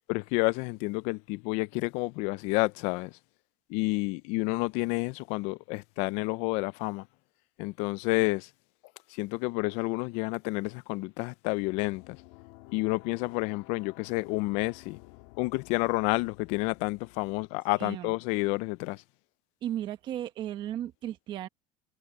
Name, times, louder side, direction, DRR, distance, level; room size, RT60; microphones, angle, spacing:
voice 1, 0.1-3.1 3.7-7.1 7.6-8.5 9.1-12.2 12.7-15.0 15.4-19.0, left 24 dB, 55° left, 0.4 m, -30 dB
sound 1, 11.6-17.5, left 21 dB, 75° left, 1.8 m, -53 dB
voice 2, 17.7-18.1 19.6-21.5, right 11 dB, 35° right, 1.2 m, -35 dB
cardioid pair, 165°, 13 cm